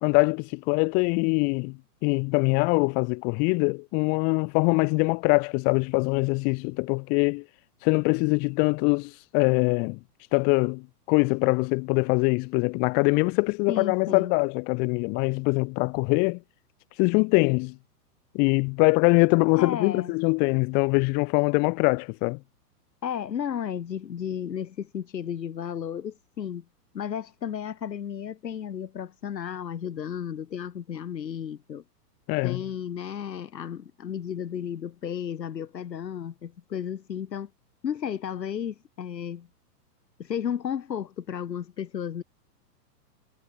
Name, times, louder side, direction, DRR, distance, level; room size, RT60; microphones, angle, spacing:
voice 1, 0.0-7.4 7.8-10.0 10.3-16.4 17.0-17.8 18.3-22.4 32.3-32.6, left 33 dB, 20° left, 1.5 m, -23 dB
voice 2, 13.7-14.3 19.5-20.1 23.0-26.6 26.9-31.8 32.4-37.5 37.8-39.5 40.2-42.2, left 8 dB, 85° left, 3.7 m, -33 dB
hypercardioid pair, 170°, 49 cm